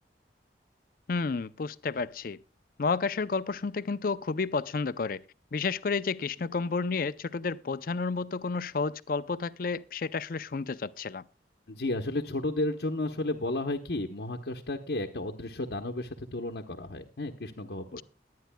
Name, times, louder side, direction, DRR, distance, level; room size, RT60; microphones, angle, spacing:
voice 1, 1.1-2.4 2.8-5.2 5.5-11.2 17.9-18.0, left 4 dB, 50° left, 0.5 m, -31 dB
voice 2, 11.7-18.0, left 2 dB, 70° left, 0.9 m, -33 dB
21.5 x 9.4 x 2.2 m
head